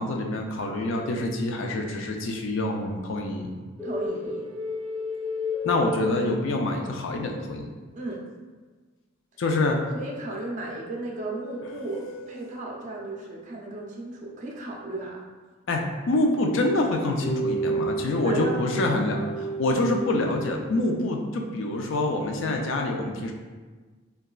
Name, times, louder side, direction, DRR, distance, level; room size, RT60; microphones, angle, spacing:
voice 1, 0.0-3.5 5.6-7.7 9.4-9.8 15.7-19.2 19.6-23.3, left 2 dB, 65° left, 2 dB, 0.4 m, -26 dB
sound 1, 3.8-7.0 10.5-13.1 17.2-21.0, equal, 5° left, 0.7 m, -33 dB
voice 2, 3.8-4.5 7.9-8.2 9.9-15.2 18.2-19.3, right 2 dB, 35° right, -1 dB, 0.4 m, -35 dB
3.8 x 2.2 x 2.3 m, 1.4 s
head